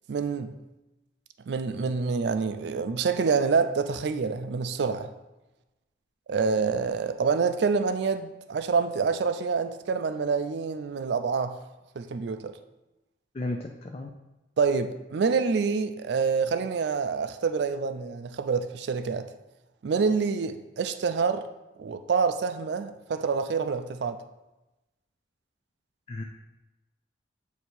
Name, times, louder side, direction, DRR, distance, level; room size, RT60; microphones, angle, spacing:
voice 1, 0.1-0.5 1.5-5.1 6.3-11.5 12.0-12.5 14.6-19.3 19.8-21.5 21.8-24.2, right 5 dB, 70° right, 0.4 m, -27 dB
voice 2, 13.3-14.1 26.1-26.2, left 2 dB, 35° left, 0.4 m, -33 dB
8.0 x 2.8 x 4.3 m
head